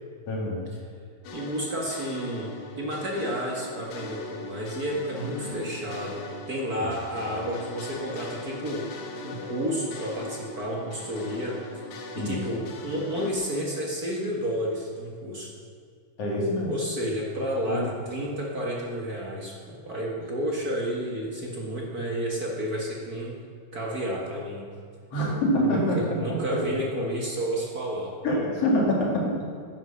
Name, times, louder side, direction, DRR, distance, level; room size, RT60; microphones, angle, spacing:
voice 1, 0.3-0.7 5.4-5.6 6.8-6.9 12.2-12.4 16.2-16.7 17.7-17.9 25.1-26.8 28.2-29.4, left 1 dB, 50° left, -2 dB, 3.2 m, -26 dB
sound 1, 1.2-13.3, left 3 dB, 85° left, 2.9 m, -40 dB
voice 2, 1.3-8.9 9.2-11.6 12.1-15.5 16.6-23.4 23.7-24.7 25.7-28.1, equal, 45° right, -2 dB, 1.3 m, -31 dB
10.5 x 10.0 x 6.9 m, 2.2 s
omnidirectional pair, 3.9 m